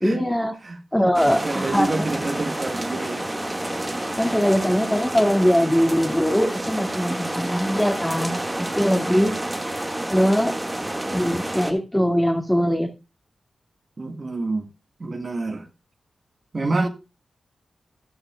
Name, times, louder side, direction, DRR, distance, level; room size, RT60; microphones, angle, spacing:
voice 1, 0.0-0.5 0.9-2.1 4.2-9.4 10.1-10.6 11.1-12.9, equal, 10° left, 2.1 m, -21 dB
sound 1, 1.1-11.7, right 1 dB, 15° right, 1.7 m, -29 dB
voice 2, 1.3-3.3 14.0-14.6 15.0-15.7 16.5-16.9, right 2 dB, 45° right, 1.5 m, -27 dB
12.5 x 11.5 x 2.3 m
cardioid pair, 65°, 0 cm